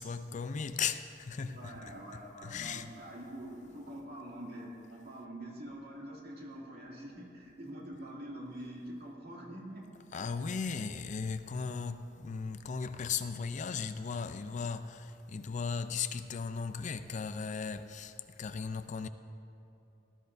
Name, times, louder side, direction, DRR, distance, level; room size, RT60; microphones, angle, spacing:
voice 1, 0.0-1.7 2.4-2.9 10.1-18.1 18.4-19.1, left 5 dB, 40° left, 0.4 m, -37 dB
voice 2, 1.5-9.8, right 1 dB, 60° right, 2.4 m, -45 dB
18.5 x 13.0 x 2.7 m
head